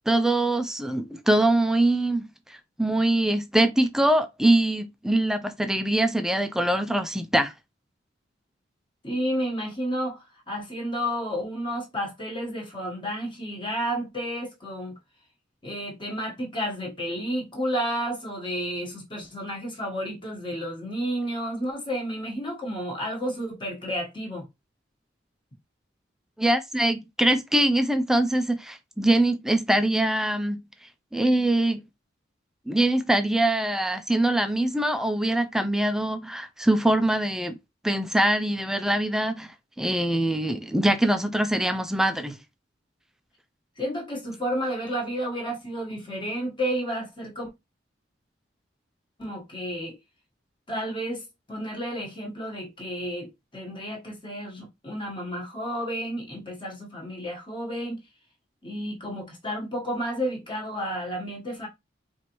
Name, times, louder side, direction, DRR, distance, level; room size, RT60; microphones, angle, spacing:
voice 1, 0.1-2.3 2.8-7.5 26.4-30.6 31.1-31.8 32.7-37.6 37.8-39.5 39.8-42.4, right 1 dB, 5° right, 0.4 m, -23 dB
voice 2, 9.0-15.0 15.6-24.4 43.8-47.5 49.2-50.0 50.7-58.0 58.6-61.7, equal, 25° left, 1.2 m, -31 dB
4.5 x 2.6 x 3.0 m
head